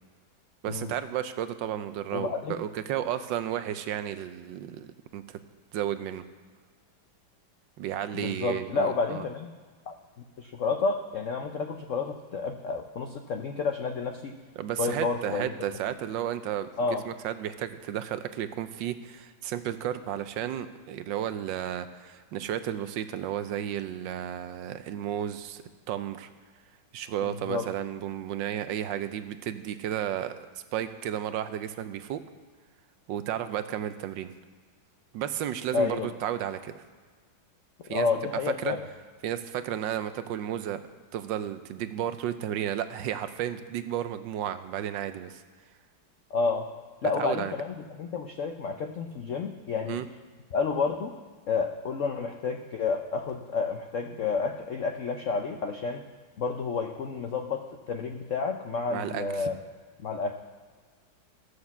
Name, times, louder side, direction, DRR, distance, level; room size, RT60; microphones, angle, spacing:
voice 1, 0.6-4.9 5.1-5.4 5.7-6.2 7.8-9.2 14.6-26.3 26.9-30.5 30.7-32.2 33.1-34.3 35.1-36.8 37.9-38.1 38.6-38.7 39.2-40.8 41.1-45.4 47.2-47.5 49.9-50.1 58.9-59.5, right 10 dB, 75° right, 11 dB, 1.2 m, -33 dB
voice 2, 2.1-2.6 8.1-9.5 9.9-10.0 10.4-14.3 14.8-15.5 16.8-17.0 27.2-27.7 35.7-36.1 37.9-38.9 46.3-46.7 47.0-50.0 50.5-51.1 51.5-56.0 56.4-59.6 60.0-60.3, left 4 dB, 75° left, 4 dB, 0.7 m, -30 dB
13.0 x 6.5 x 7.0 m, 1.6 s
omnidirectional pair, 2.1 m